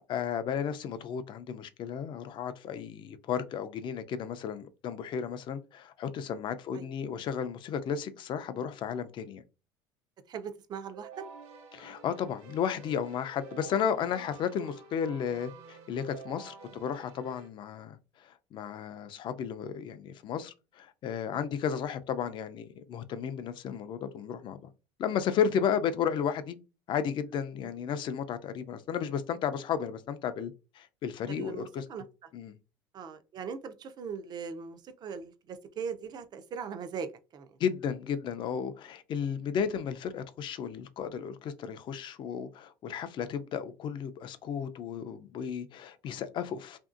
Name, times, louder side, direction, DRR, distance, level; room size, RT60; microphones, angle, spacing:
voice 1, 0.0-9.4 11.7-24.6 25.0-26.6 26.9-31.8 32.3-32.6 37.6-46.8, left 7 dB, 45° left, 0.4 m, -33 dB
voice 2, 10.3-11.2 21.3-21.4 27.6-27.8 31.3-32.0 32.9-37.5, right 6 dB, 35° right, 0.4 m, -40 dB
Keyboard (musical), 10.9-17.5, right 5 dB, 55° right, 0.9 m, -49 dB
2.8 x 2.6 x 2.4 m
supercardioid pair, 115°, 12 cm